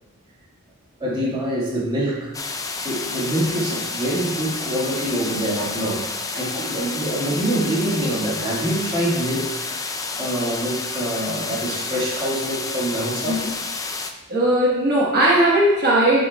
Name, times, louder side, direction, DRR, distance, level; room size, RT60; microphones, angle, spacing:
voice 1, 1.0-2.4 2.8-13.5, right 1 dB, 20° right, -6 dB, 1.7 m, -25 dB
sound 1, 2.3-14.1, left 3 dB, 15° left, 0.4 m, -30 dB
voice 2, 14.3-16.3, right 1 dB, 45° right, -6 dB, 1.1 m, -18 dB
9.8 x 5.5 x 2.2 m, 1.1 s
head